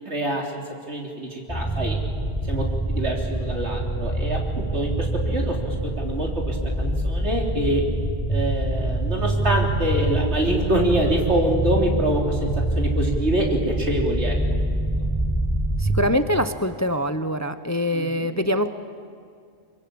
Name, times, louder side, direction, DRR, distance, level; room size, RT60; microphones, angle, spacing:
voice 1, 0.1-0.6 0.9-2.0 2.4-7.8 8.3-14.4 14.7-14.9 17.9-18.3, right 1 dB, 80° right, 0 dB, 3.9 m, -25 dB
sound 1, 1.5-16.1, right 1 dB, ahead, 4.1 m, -25 dB
voice 2, 15.8-18.7, equal, 20° left, 10 dB, 0.7 m, -24 dB
25.5 x 22.5 x 8.7 m, 2.2 s
omnidirectional pair, 1.1 m